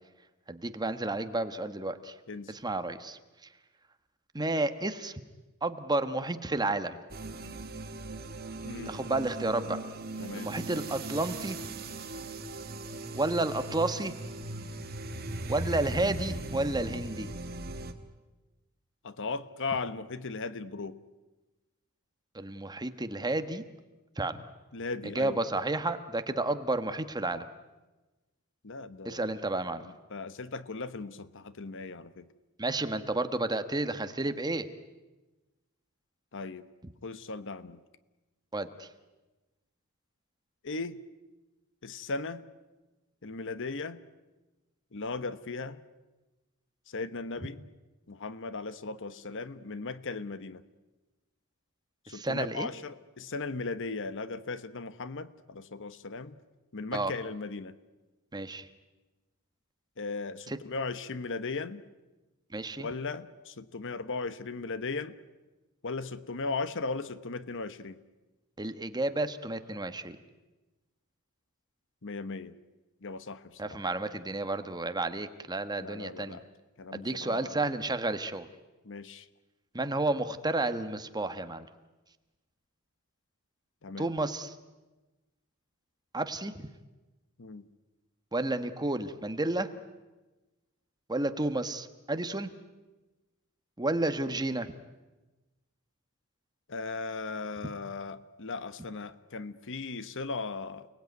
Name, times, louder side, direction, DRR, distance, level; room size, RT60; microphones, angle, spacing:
voice 1, 0.5-2.1 2.5-3.2 4.3-5.2 5.6-7.0 8.9-9.8 10.3-11.6 13.1-14.1 15.5-17.3 22.3-23.6 24.2-24.4 25.0-27.4 29.0-29.8 32.6-34.7 38.5-38.9 52.1-52.7 56.9-57.1 58.3-58.7 60.5-60.6 62.5-62.9 68.6-70.2 73.6-76.4 76.9-78.5 79.7-81.7 84.0-84.5 86.1-86.7 88.3-89.7 91.1-92.5 93.8-94.7, right 2 dB, 20° right, 9 dB, 1.3 m, -31 dB
sound 1, 7.1-17.9, right 2 dB, 45° right, 1.9 m, -39 dB
voice 2, 8.6-9.0 10.2-10.5 19.0-21.0 24.7-25.4 28.6-29.3 29.8-32.3 36.3-36.7 37.0-37.8 40.6-41.0 41.8-42.4 43.2-44.0 44.9-45.8 46.9-47.6 48.1-50.6 52.0-56.4 56.7-57.8 60.0-61.8 62.8-65.1 65.8-68.0 72.0-72.6 73.0-73.8 75.8-76.4 76.8-77.6 78.8-79.3 83.8-84.1 87.4-87.7 96.7-100.9, left 3 dB, 60° left, 14 dB, 1.1 m, -37 dB
29.5 x 19.5 x 9.5 m, 1.1 s
head